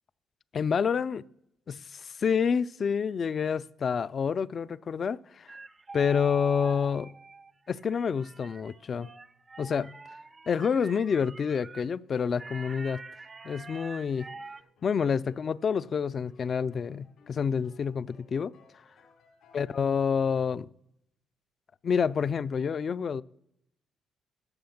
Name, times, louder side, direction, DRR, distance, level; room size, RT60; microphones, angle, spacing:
voice 1, 0.5-1.2 1.7-5.6 5.9-7.1 7.7-9.1 9.6-9.9 10.5-13.0 13.4-14.3 14.8-18.5 19.5-20.7 21.8-23.2, left 6 dB, 50° left, 0.3 m, -28 dB
sound 1, 5.5-11.8 12.4-14.6, right 3 dB, 30° right, 0.4 m, -45 dB
sound 2, 13.9-19.8, left 4 dB, 85° left, 2.7 m, -61 dB
11.5 x 5.7 x 7.1 m
cardioid pair, 90°, 0 cm